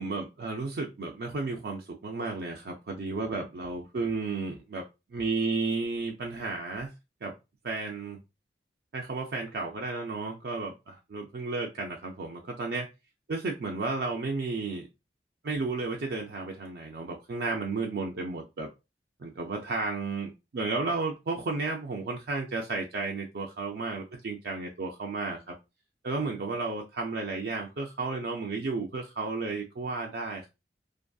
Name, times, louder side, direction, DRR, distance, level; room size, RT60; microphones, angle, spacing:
voice 1, 0.0-4.8 5.1-6.9 7.2-7.3 7.6-8.2 8.9-12.9 13.3-14.9 15.4-18.7 19.2-25.6 26.0-30.5, right 3 dB, 65° right, 0 dB, 0.4 m, -33 dB
2.6 x 2.5 x 2.2 m, 0.25 s
head